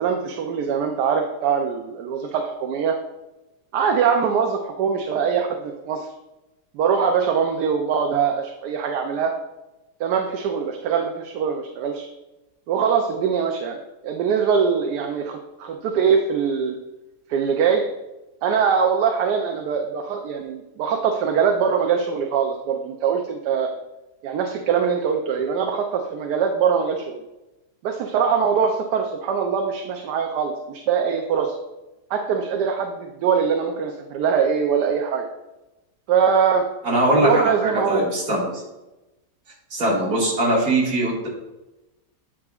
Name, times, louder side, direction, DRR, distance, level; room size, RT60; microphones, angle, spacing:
voice 1, 0.0-3.0 3.7-6.1 6.7-9.3 10.0-12.1 12.7-13.8 14.0-16.8 17.3-17.8 18.4-23.7 24.2-27.2 27.8-31.6 32.1-35.2 36.1-36.6 37.1-38.1, right 6 dB, 75° right, 3 dB, 1.2 m, -22 dB
voice 2, 36.8-38.6 39.7-41.3, right 1 dB, 55° right, -4 dB, 2.3 m, -21 dB
8.8 x 6.1 x 2.4 m, 1.0 s
omnidirectional pair, 1.8 m